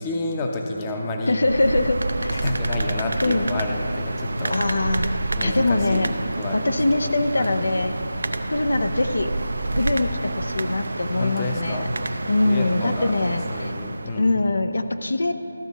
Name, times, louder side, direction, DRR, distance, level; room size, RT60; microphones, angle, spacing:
voice 1, 0.0-1.4 2.4-4.6 5.4-6.8 7.4-7.6 11.1-11.8 12.4-13.1 13.5-14.4, left 2 dB, 20° left, 2 dB, 0.6 m, -30 dB
voice 2, 1.3-2.4 3.2-3.5 4.5-5.1 5.4-6.1 6.5-7.9 8.5-9.3 9.8-11.9 12.3-13.7 14.2-15.3, left 2 dB, 85° left, 8 dB, 0.5 m, -23 dB
sound 1, 1.3-14.3, right 2 dB, 75° right, 0.5 m, -28 dB
14.0 x 5.9 x 4.1 m, 2.7 s
figure-of-eight pair, 170°, 0 cm